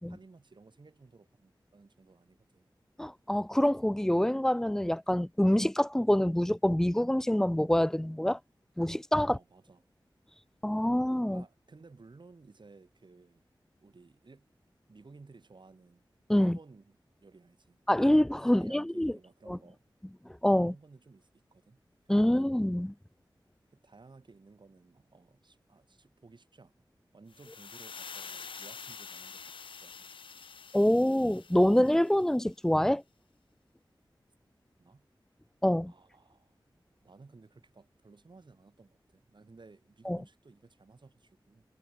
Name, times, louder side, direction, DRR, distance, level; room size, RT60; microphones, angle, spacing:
voice 1, 0.1-2.7 9.3-9.8 11.3-13.4 13.8-14.5 14.9-16.1 16.4-17.8 18.5-19.8 20.6-21.8 22.0-22.4 23.7-26.7 27.1-29.4 29.8-30.2 34.8-35.1 35.9-36.6 37.0-41.6, right 3 dB, 65° right, 3.2 m, -56 dB
voice 2, 3.0-8.4 8.8-9.4 10.6-11.4 16.3-16.6 17.9-19.1 19.5-19.6 20.4-20.7 22.1-22.9 30.7-33.0 35.6-35.9 40.1-40.2, left 1 dB, 5° left, 0.4 m, -26 dB
sound 1, 27.3-32.4, left 5 dB, 90° left, 0.5 m, -47 dB
wide cardioid pair, 65°, 8 cm